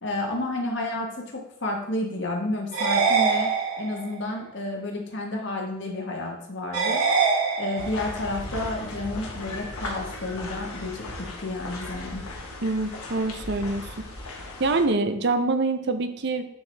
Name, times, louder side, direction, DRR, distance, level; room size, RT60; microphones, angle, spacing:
voice 1, 0.0-7.0 7.6-11.0 11.4-12.2, left 2 dB, 55° left, 1 dB, 1.4 m, -31 dB
sound 1, 2.7-4.1 6.7-8.1, right 5 dB, 90° right, 1.8 m, -24 dB
sound 2, 7.8-14.8, left 2 dB, 80° left, 1.3 m, -37 dB
voice 2, 12.6-13.9 14.6-16.4, right 3 dB, 50° right, 8 dB, 0.6 m, -25 dB
9.7 x 4.6 x 3.4 m, 0.81 s
head